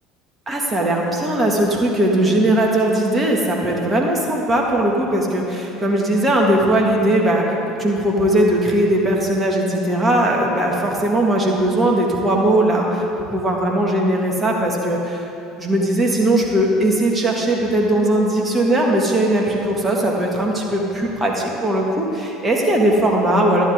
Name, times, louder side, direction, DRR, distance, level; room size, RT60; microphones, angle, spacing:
voice 1, 0.5-15.3 15.6-23.6, right 1 dB, 20° right, -1 dB, 2.0 m, -19 dB
11.5 x 10.5 x 3.7 m, 2.9 s
hypercardioid pair, 70°, 0 cm